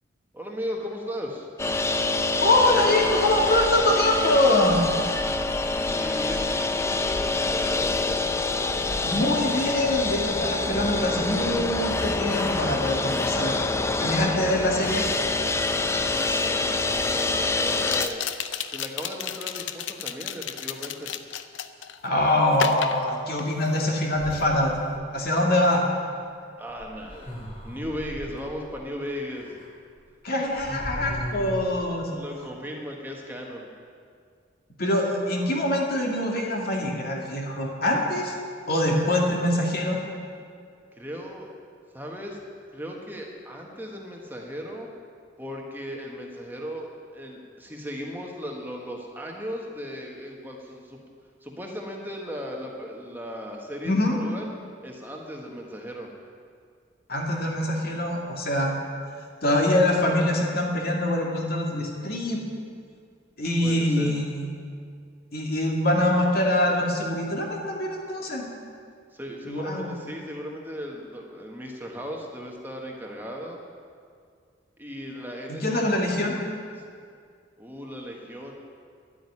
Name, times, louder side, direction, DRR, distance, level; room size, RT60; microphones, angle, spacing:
voice 1, 0.3-1.5 5.7-7.9 15.8-18.3 18.7-21.1 26.6-27.4 27.6-29.6 32.1-33.7 40.9-41.5 41.9-42.4 42.7-44.9 45.4-51.0 51.4-54.5 54.8-56.1 63.6-64.2 69.1-73.6 74.8-75.9 76.8-76.9 77.6-78.5, equal, 10° right, 0 dB, 1.4 m, -37 dB
sound 1, 1.6-18.1, left 3 dB, 15° left, 0.5 m, -26 dB
voice 2, 2.4-4.8 9.0-13.6 14.0-15.0 22.0-24.7 25.1-25.8 30.2-32.1 34.8-38.3 38.7-40.0 53.8-54.2 57.1-58.7 59.4-62.4 63.4-64.4 65.3-68.4 69.5-69.9 75.5-76.3, left 1 dB, 50° left, -1 dB, 2.3 m, -24 dB
sound 2, 16.1-16.2 17.8-22.0 22.5-23.9 24.2-24.5, left 8 dB, 75° left, 0.6 m, -33 dB
sound 3, 24.1-25.2 26.7-28.5 29.3-29.7 30.0-30.1 30.4-31.7, equal, 30° left, 2.7 m, -37 dB
12.0 x 8.8 x 9.8 m, 2.2 s
head